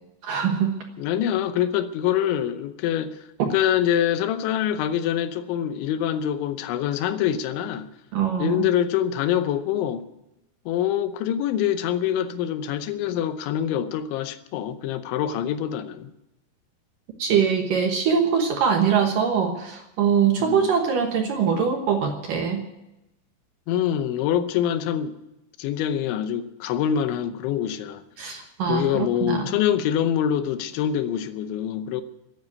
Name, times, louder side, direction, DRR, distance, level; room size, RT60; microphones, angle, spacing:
voice 1, 0.2-0.8 3.4-3.5 8.1-8.7 17.2-22.6 28.2-29.5, right 7 dB, 65° right, 2.2 m, -23 dB
voice 2, 1.0-7.9 8.4-10.0 10.7-16.1 20.4-20.7 23.7-25.2 25.6-28.0 28.7-32.0, left 10 dB, 85° left, 3.3 m, -25 dB
14.0 x 10.5 x 9.5 m
omnidirectional pair, 5.3 m